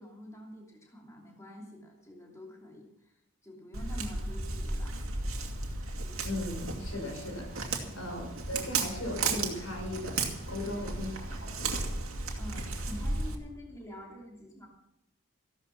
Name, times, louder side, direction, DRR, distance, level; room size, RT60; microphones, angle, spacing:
voice 1, 0.0-5.0 7.8-8.0 10.6-10.9 12.4-14.7, equal, 15° left, -1 dB, 2.7 m, -47 dB
Walk footsteps, 3.7-13.3, right 3 dB, 75° right, 2.3 m, -34 dB
voice 2, 6.2-10.2 10.5-11.1 11.4-11.9, left 1 dB, 80° left, 2 dB, 5.1 m, -38 dB
15.0 x 12.5 x 5.8 m, 0.85 s
head